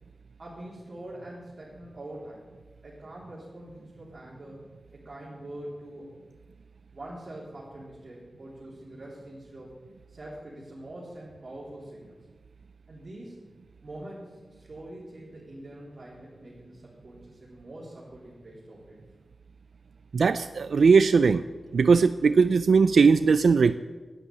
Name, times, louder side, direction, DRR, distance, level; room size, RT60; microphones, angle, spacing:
voice 1, 0.4-2.4 2.8-4.6 4.9-6.1 6.9-9.8 10.1-12.2 12.9-13.5 13.8-19.1, right 1 dB, 50° right, -7 dB, 4.0 m, -44 dB
voice 2, 20.1-21.4 21.7-23.8, right 5 dB, 85° right, 12 dB, 0.4 m, -19 dB
11.5 x 10.5 x 9.0 m, 1.4 s
wide cardioid pair, 85°, 0 cm